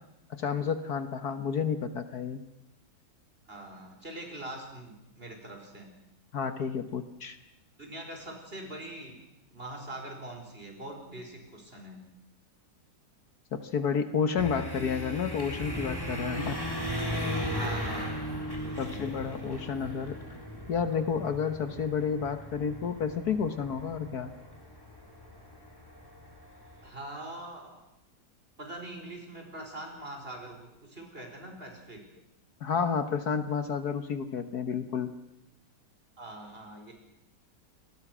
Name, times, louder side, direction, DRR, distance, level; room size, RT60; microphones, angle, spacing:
voice 1, 0.4-2.4 6.3-7.4 13.5-16.6 18.8-20.1 20.7-24.3 32.6-35.1, left 6 dB, 65° left, 9 dB, 1.7 m, -30 dB
voice 2, 3.5-5.9 7.8-9.2 9.5-12.0 17.6-18.3 18.6-19.1 26.8-27.8 28.6-32.0 36.2-36.9, right 1 dB, 30° right, 2 dB, 5.3 m, -43 dB
sound 1, 14.4-26.9, equal, 10° left, 3.5 m, -37 dB
28.0 x 20.5 x 6.2 m, 0.88 s
omnidirectional pair, 1.9 m